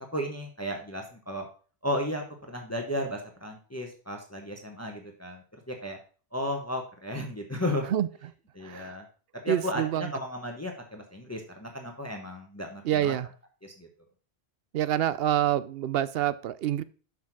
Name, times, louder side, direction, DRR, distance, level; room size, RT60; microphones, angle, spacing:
voice 1, 0.1-1.5 1.8-6.0 6.3-7.9 8.5-9.0 9.4-13.1 13.6-13.9, left 1 dB, 15° left, 3 dB, 1.1 m, -34 dB
voice 2, 9.5-10.0 12.8-13.3 14.7-16.8, right 11 dB, 70° right, 16 dB, 0.8 m, -27 dB
6.4 x 5.8 x 6.0 m, 0.39 s
omnidirectional pair, 1.1 m